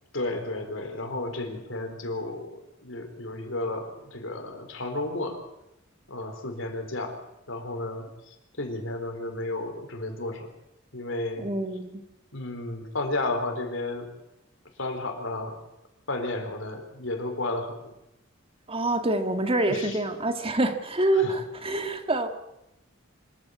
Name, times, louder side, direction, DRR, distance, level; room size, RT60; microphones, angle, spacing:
voice 1, 0.1-5.4 6.1-7.2 7.5-10.5 10.9-11.5 12.3-14.1 14.8-15.6 16.1-17.9 19.7-20.0 21.1-21.4, left 2 dB, 70° left, 5 dB, 4.2 m, -33 dB
voice 2, 11.4-12.0 18.7-22.3, right 2 dB, 30° right, 7 dB, 1.8 m, -26 dB
25.5 x 14.5 x 8.5 m, 0.88 s
head